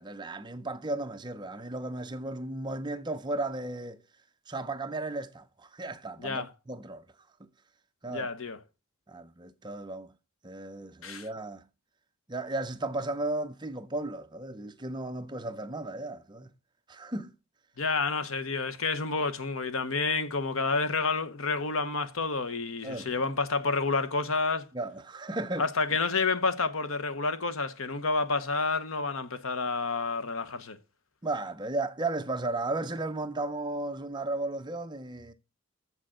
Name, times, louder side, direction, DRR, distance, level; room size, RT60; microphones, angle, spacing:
voice 1, 0.0-4.0 4.5-7.0 7.4-7.5 8.0-8.3 9.1-10.1 10.4-11.7 12.3-16.5 16.9-17.3 22.8-23.1 24.7-25.7 31.2-35.3, right 2 dB, 20° right, 0.6 m, -35 dB
voice 2, 8.1-8.6 11.0-11.3 17.8-24.7 25.6-30.8, left 4 dB, 70° left, 1.0 m, -29 dB
7.4 x 6.3 x 7.7 m
head